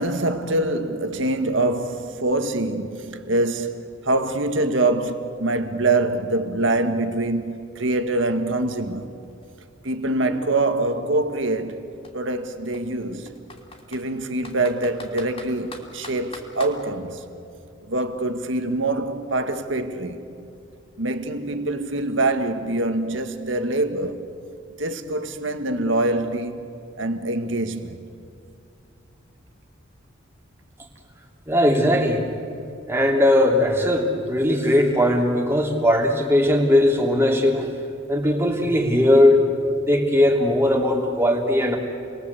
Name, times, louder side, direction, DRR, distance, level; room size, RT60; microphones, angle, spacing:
voice 1, 0.0-9.1 9.8-11.9 12.1-13.3 13.9-17.2 17.8-20.2 21.0-24.2 24.8-28.0, right 2 dB, 65° right, 1.8 m, -24 dB
Computer keyboard, 8.5-8.6 8.9-10.8 11.6-11.7 12.0-12.1 12.7-14.1 14.4-16.8, left 3 dB, 30° left, 3.1 m, -42 dB
voice 2, 31.5-32.2 32.9-37.7 38.1-39.4 39.8-41.8, left 1 dB, 10° right, 3.1 m, -19 dB
29.5 x 21.5 x 8.4 m
head